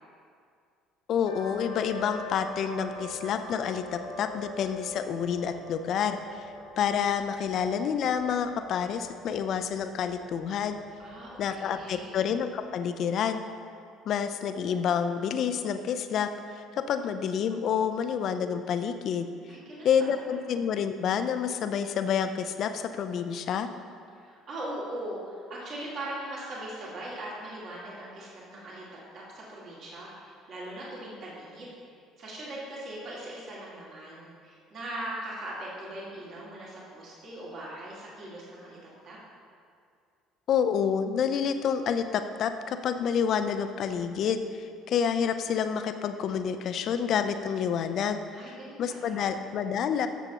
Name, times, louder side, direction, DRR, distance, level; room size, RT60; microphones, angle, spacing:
voice 1, 1.1-6.5 6.8-10.8 11.4-13.4 14.1-19.3 19.8-23.7 40.5-50.1, left 7 dB, 55° left, 9 dB, 0.5 m, -28 dB
sound 1, 1.3-12.6, left 2 dB, 80° left, 0.9 m, -44 dB
voice 2, 11.0-12.2 19.5-20.1 24.2-28.8 29.1-31.7 32.2-38.8 39.0-39.2 48.4-49.3, right 1 dB, 50° right, -6 dB, 2.2 m, -40 dB
13.0 x 7.0 x 2.9 m, 2.3 s
figure-of-eight pair, 55°, 0 cm